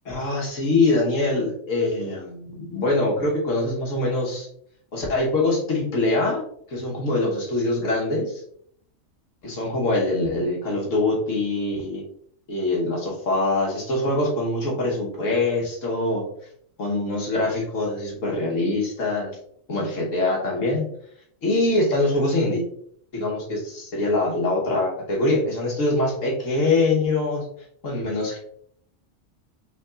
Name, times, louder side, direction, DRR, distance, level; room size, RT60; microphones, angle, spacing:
voice 1, 0.0-4.5 4.9-6.4 6.7-8.4 9.4-12.0 12.5-16.2 16.8-19.3 19.7-20.8 21.4-22.6 23.1-27.4 27.8-28.4, left 2 dB, 90° left, -2 dB, 1.7 m, -23 dB
5.8 x 3.5 x 2.4 m, 0.66 s
omnidirectional pair, 1.3 m